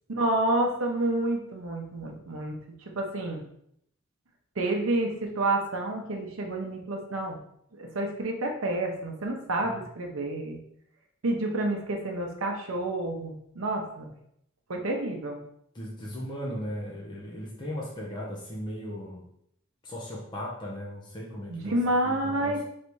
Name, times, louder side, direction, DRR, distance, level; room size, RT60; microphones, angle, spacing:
voice 1, 0.1-2.6 2.8-3.4 4.6-7.4 7.7-10.6 11.2-14.1 14.7-15.4 21.5-22.6, right 1 dB, 80° right, 2 dB, 0.8 m, -29 dB
voice 2, 15.7-19.3 19.8-22.6, equal, 20° left, -4 dB, 0.6 m, -37 dB
3.2 x 2.7 x 4.5 m, 0.72 s
head